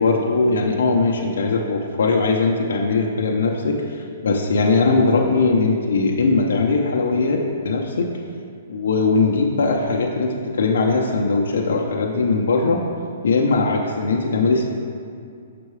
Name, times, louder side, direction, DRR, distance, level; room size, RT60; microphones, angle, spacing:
voice 1, 0.0-8.1 8.7-12.8 13.2-14.7, left 3 dB, 80° left, 0 dB, 0.7 m, -20 dB
6.0 x 5.6 x 4.8 m, 2.3 s
hypercardioid pair, 155°, 0 cm